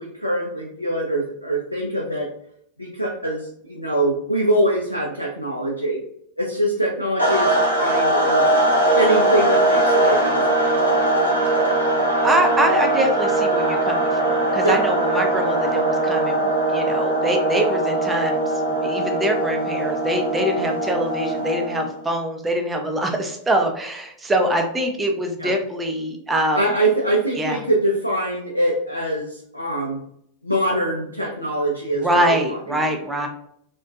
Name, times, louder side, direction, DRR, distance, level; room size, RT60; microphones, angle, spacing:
voice 1, 0.0-2.3 2.8-6.0 6.4-8.5 9.0-10.7 14.6-14.8 25.4-25.5 26.5-30.0 30.4-32.8 33.1-33.3, right 1 dB, 85° left, -1 dB, 0.3 m, -23 dB
sound 1, 7.2-21.9, right 1 dB, 85° right, 0.7 m, -20 dB
voice 2, 12.2-26.6 27.4-27.6 32.0-33.3, right 1 dB, 10° right, 3 dB, 0.4 m, -24 dB
2.5 x 2.1 x 2.4 m, 0.70 s
figure-of-eight pair, 90°, 0 cm